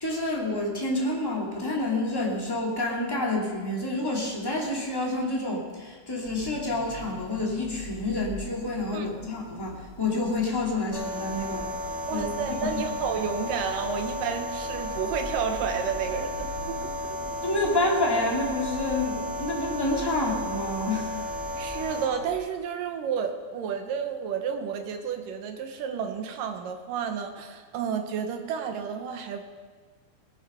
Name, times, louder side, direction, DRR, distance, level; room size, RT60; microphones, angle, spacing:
voice 1, 0.0-11.7 12.1-12.3 12.6-12.7 17.4-21.2, left 2 dB, 10° left, -3 dB, 1.4 m, -28 dB
sound 1, 6.2-22.3, left 1 dB, 50° left, 1.8 m, -44 dB
voice 2, 8.9-9.6 12.1-16.9 21.6-29.4, right 7 dB, 70° right, 6 dB, 2.4 m, -31 dB
sound 2, 10.9-22.1, left 1 dB, 25° right, 1.8 m, -34 dB
19.0 x 9.5 x 5.6 m, 1.5 s
omnidirectional pair, 4.5 m